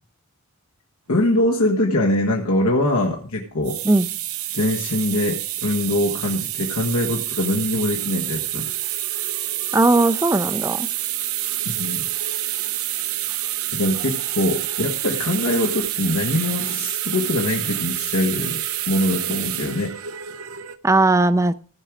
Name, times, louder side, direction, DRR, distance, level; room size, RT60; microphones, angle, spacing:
voice 1, 1.1-3.8 4.5-8.6 11.6-12.0 13.7-18.6 18.9-20.0, left 1 dB, 90° left, -1 dB, 1.5 m, -23 dB
sound 1, 3.5-20.8, right 13 dB, 80° right, 0.6 m, -28 dB
voice 2, 9.7-10.9 20.8-21.5, right 2 dB, 15° right, 15 dB, 0.4 m, -17 dB
16.0 x 6.1 x 5.0 m, 0.43 s
head